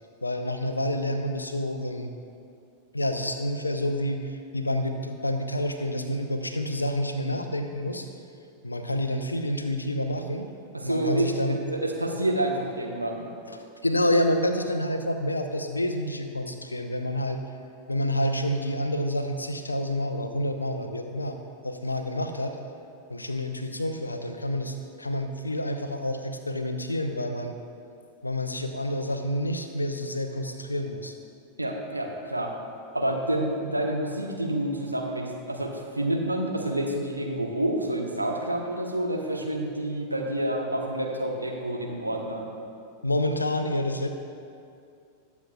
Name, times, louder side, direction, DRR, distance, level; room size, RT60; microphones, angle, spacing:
voice 1, 0.2-2.1 2.9-8.0 8.6-10.5 10.8-11.5 13.5-17.4 17.9-21.4 21.6-22.6 23.1-27.6 28.2-31.1 43.0-44.1, left 1 dB, 80° left, 6 dB, 0.7 m, -28 dB
voice 2, 10.7-13.3 31.6-32.5 32.9-42.5, right 1 dB, 85° right, 1 dB, 1.1 m, -28 dB
20.5 x 7.2 x 2.4 m, 2.4 s
figure-of-eight pair, 90°, 0 cm